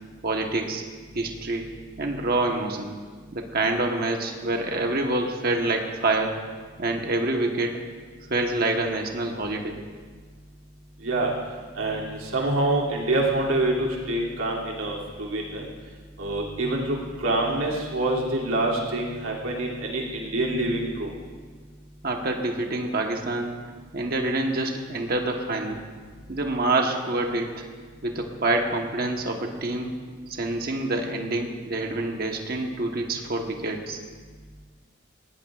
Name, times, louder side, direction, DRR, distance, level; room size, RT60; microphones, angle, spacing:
voice 1, 0.2-0.8 1.1-1.7 2.0-2.9 3.3-6.4 6.8-7.8 8.3-9.8 22.0-23.5 23.9-25.8 26.3-27.5 28.0-30.0 30.3-34.0, right 2 dB, 45° right, 2 dB, 1.2 m, -26 dB
voice 2, 11.7-15.6 16.2-21.1, right 2 dB, 85° right, -3 dB, 2.8 m, -26 dB
20.0 x 16.5 x 2.5 m, 1.6 s
head